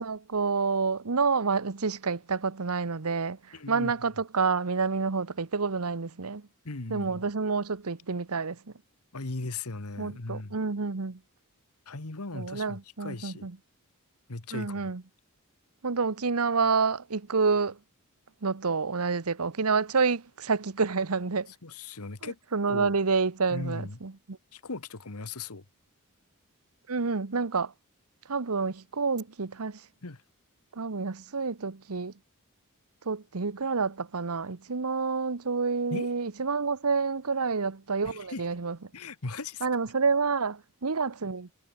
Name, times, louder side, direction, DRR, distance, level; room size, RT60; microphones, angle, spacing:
voice 1, 0.0-6.5 6.9-8.6 10.0-11.2 12.3-13.6 14.5-15.0 15.8-17.8 18.4-21.5 22.2-24.4 26.9-27.7 28.3-29.8 30.7-32.1 33.0-38.8 39.6-41.5, right 4 dB, 80° right, 1.0 m, -28 dB
voice 2, 3.5-3.9 6.6-7.2 9.1-10.6 11.8-13.5 14.3-14.9 21.6-22.4 22.7-23.0 23.5-24.0 24.5-25.6 30.0-30.2 35.9-36.1 38.1-38.4 38.9-39.7, left 3 dB, 90° left, 1.7 m, -38 dB
head